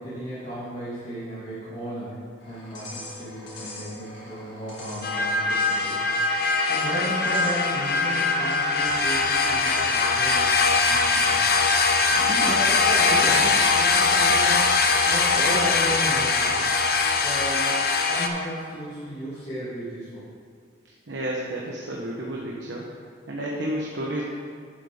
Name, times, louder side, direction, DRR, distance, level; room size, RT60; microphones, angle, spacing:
voice 1, 0.0-6.1 6.7-11.5 12.4-16.6 17.2-20.2, equal, 35° left, -13 dB, 2.4 m, -34 dB
sound 1, 2.4-16.9, left 1 dB, 80° left, 2.4 m, -43 dB
sound 2, 5.0-18.3, left 4 dB, 50° left, 0.7 m, -21 dB
voice 2, 12.1-12.6 21.1-22.9 23.3-24.2, right 1 dB, 75° right, -3 dB, 1.1 m, -31 dB
10.5 x 7.7 x 3.7 m, 2.2 s
head